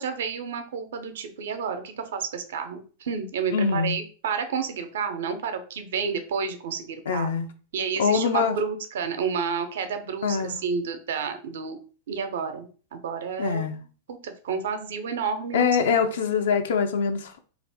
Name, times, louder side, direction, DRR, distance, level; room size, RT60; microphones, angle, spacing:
voice 1, 0.0-7.3 7.7-11.8 12.1-15.7, right 6 dB, 60° right, 8 dB, 0.5 m, -30 dB
voice 2, 3.5-4.0 7.1-7.5 8.0-8.6 10.2-10.6 13.4-13.8 15.5-17.4, left 6 dB, 60° left, 7 dB, 0.4 m, -24 dB
2.6 x 2.4 x 3.4 m, 0.39 s
figure-of-eight pair, 90°, 0 cm